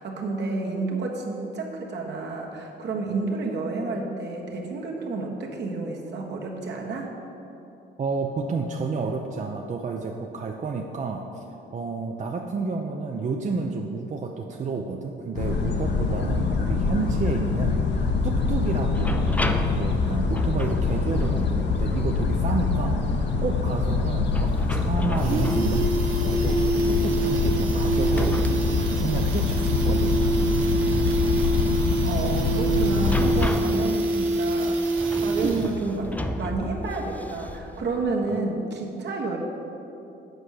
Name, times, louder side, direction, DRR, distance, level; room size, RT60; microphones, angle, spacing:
voice 1, 0.0-7.1 32.0-39.4, right 3 dB, 60° right, -1 dB, 1.4 m, -30 dB
voice 2, 8.0-11.4 11.7-25.9 26.2-28.5 28.9-30.1, right 4 dB, 35° right, 2 dB, 0.6 m, -30 dB
sound 1, 15.3-33.5, left 4 dB, 60° left, 0.9 m, -24 dB
sound 2, 18.6-38.4, left 1 dB, 5° left, 0.5 m, -35 dB
sound 3, 24.3-24.4 24.7-24.8 25.0-35.9 36.1-36.2, right 3 dB, 80° right, 0.9 m, -26 dB
8.0 x 5.5 x 6.5 m, 2.9 s
cardioid pair, 90°, 20 cm